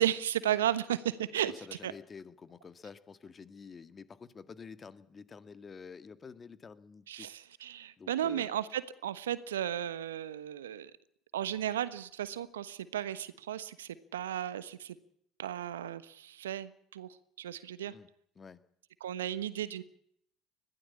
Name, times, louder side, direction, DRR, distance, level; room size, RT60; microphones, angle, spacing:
voice 1, 0.0-1.5 1.8-1.9 7.1-10.9 11.3-15.0 15.4-17.1 17.4-17.9 19.0-19.8, right 11 dB, 80° right, 16 dB, 1.2 m, -34 dB
voice 2, 1.4-7.3 8.0-8.5 17.8-18.1 18.4-18.6, left 5 dB, 30° left, 12 dB, 1.9 m, -49 dB
21.5 x 15.5 x 8.5 m, 0.68 s
hypercardioid pair, 70°, 0 cm